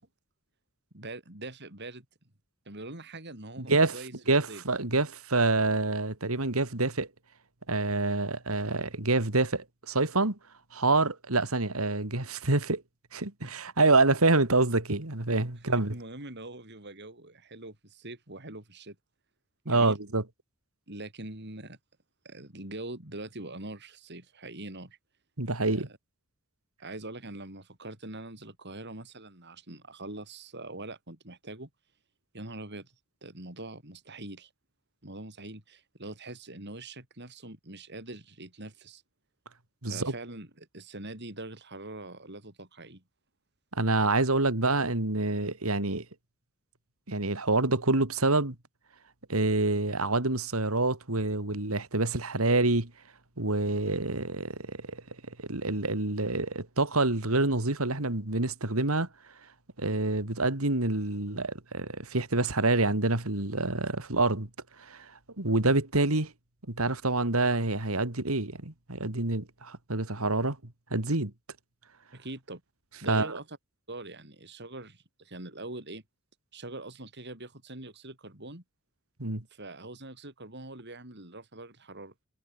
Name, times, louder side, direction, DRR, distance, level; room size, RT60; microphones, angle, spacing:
voice 1, 0.9-2.0 2.7-4.1 4.5-4.6 13.4-13.5 15.9-19.0 19.6-20.0 20.9-21.8 22.2-25.0 25.6-25.9 26.8-31.7 32.3-32.9 33.2-34.5 35.0-39.0 39.9-43.0 72.1-72.6 73.0-73.6 73.9-76.0 76.5-78.6 79.5-82.1, right 2 dB, 55° right, 6.2 m, -43 dB
voice 2, 3.6-4.0 4.3-7.1 7.7-10.4 10.7-12.8 13.1-16.0 19.7-20.2 25.4-25.9 39.8-40.1 43.7-46.0 47.1-48.5 49.3-52.9 53.4-55.0 55.4-59.1 59.8-64.5 64.8-65.1 65.4-66.3 66.7-71.3 73.1-73.4 79.2-79.4, right 2 dB, 80° right, 2.9 m, -27 dB
head